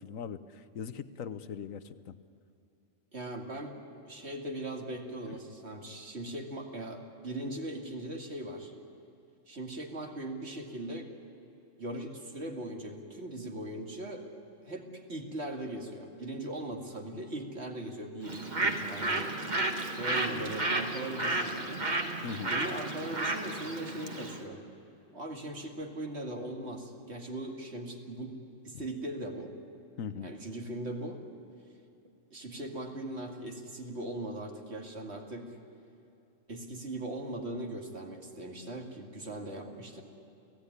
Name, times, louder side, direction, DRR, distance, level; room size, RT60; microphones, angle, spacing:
voice 1, 0.0-2.2 22.2-22.5 30.0-30.3, left 7 dB, 90° left, 13 dB, 1.3 m, -40 dB
voice 2, 3.1-3.8 4.0-8.7 9.5-11.1 11.8-14.3 14.6-19.5 19.9-21.9 22.5-24.6 25.1-28.4 28.6-29.5 30.2-31.2 32.3-35.6 36.5-40.0, right 1 dB, 55° right, 3 dB, 2.6 m, -39 dB
Bird, 18.2-24.4, right 2 dB, 35° right, 1.7 m, -32 dB
29.5 x 16.5 x 9.8 m, 2.8 s
omnidirectional pair, 1.3 m